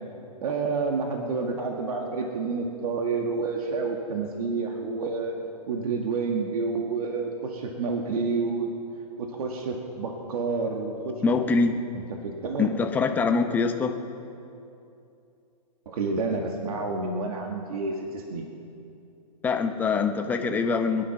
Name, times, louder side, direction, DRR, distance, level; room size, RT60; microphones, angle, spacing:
voice 1, 0.4-5.4 5.7-8.7 9.2-11.1 11.9-12.7 15.9-18.5, right 4 dB, 65° right, 1 dB, 2.0 m, -29 dB
voice 2, 11.2-11.8 12.6-14.0 19.4-21.0, left 4 dB, 10° left, 5 dB, 0.7 m, -24 dB
22.5 x 11.0 x 6.0 m, 2.7 s
hypercardioid pair, 155°, 20 cm